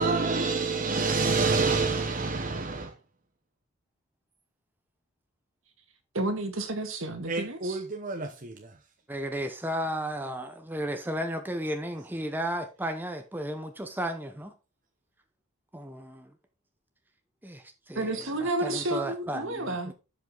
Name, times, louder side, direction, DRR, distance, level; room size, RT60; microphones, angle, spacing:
voice 1, 0.0-2.9 7.3-8.5, right 4 dB, 40° right, 0.9 m, -27 dB
voice 2, 6.1-7.8 18.0-19.9, right 2 dB, 65° right, 2.1 m, -31 dB
voice 3, 9.1-14.5 15.7-16.3 17.4-19.9, right 1 dB, 10° right, 0.8 m, -34 dB
12.0 x 5.6 x 3.9 m
head